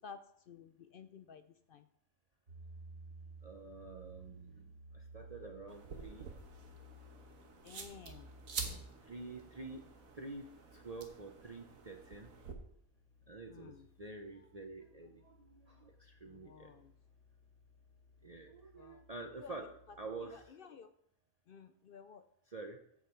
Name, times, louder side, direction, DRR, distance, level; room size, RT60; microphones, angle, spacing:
voice 1, 0.5-1.4 1.7-1.8 7.6-8.3 13.5-13.8 16.5-16.8 18.8-19.0 20.8-20.9 21.5-22.2, left 7 dB, 65° left, 10 dB, 0.5 m, -53 dB
sound 1, 2.5-20.4, right 2 dB, 55° right, 2.4 m, -59 dB
voice 2, 3.4-6.3 9.0-12.3 13.3-16.7 18.2-20.8 22.5-22.8, right 3 dB, 35° right, 3 dB, 0.7 m, -48 dB
sound 2, 5.7-12.5, right 5 dB, 80° right, 1.6 m, -48 dB
14.5 x 5.4 x 4.4 m, 0.72 s
omnidirectional pair, 1.4 m